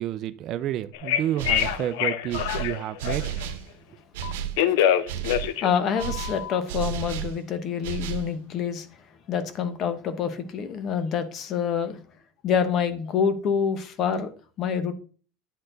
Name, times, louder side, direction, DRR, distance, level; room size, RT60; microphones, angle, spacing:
voice 1, 0.0-3.3, right 11 dB, 45° right, 0.4 m, -30 dB
Telephone, 0.9-3.4 4.2-6.6, left 10 dB, 75° left, 0.7 m, -25 dB
sound 1, 1.4-1.9 2.3-3.7 4.1-4.6 5.1-5.5 6.0-7.4 7.8-8.3, right 9 dB, 85° right, 0.9 m, -32 dB
voice 2, 5.4-8.9 9.3-12.0 12.4-14.3 14.6-14.9, left 7 dB, 40° left, 0.9 m, -27 dB
9.5 x 4.4 x 3.9 m
supercardioid pair, 140°, 0 cm